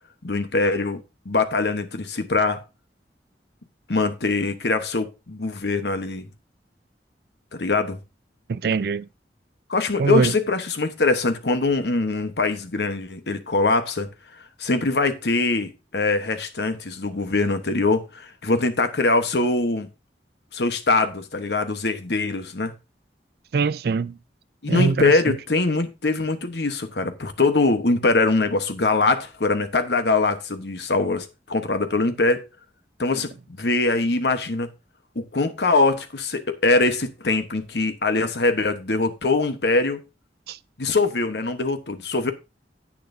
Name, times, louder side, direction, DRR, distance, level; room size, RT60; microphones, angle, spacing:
voice 1, 0.2-1.0 1.2-2.6 3.9-6.3 7.5-8.0 9.7-14.1 14.6-19.9 20.5-22.7 24.6-32.5 33.0-34.7 35.1-40.0 40.8-42.3, left 3 dB, 70° left, 1.1 m, -23 dB
voice 2, 8.5-9.1 10.0-10.3 23.5-24.2 24.7-25.4 40.5-40.6, right 4 dB, 60° right, 0.4 m, -22 dB
10.5 x 8.6 x 2.7 m
head